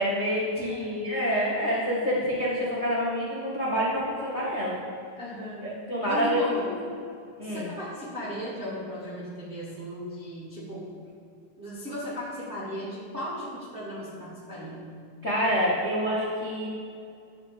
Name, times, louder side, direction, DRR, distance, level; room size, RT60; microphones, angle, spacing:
voice 1, 0.0-4.7 5.6-6.7 7.4-7.6 15.2-16.7, equal, 70° left, -5 dB, 0.6 m, -27 dB
voice 2, 0.5-1.0 5.1-5.7 6.1-6.7 7.4-10.9 11.6-14.8, equal, 45° right, -7 dB, 0.7 m, -36 dB
10.5 x 3.7 x 7.0 m, 2.5 s
omnidirectional pair, 3.5 m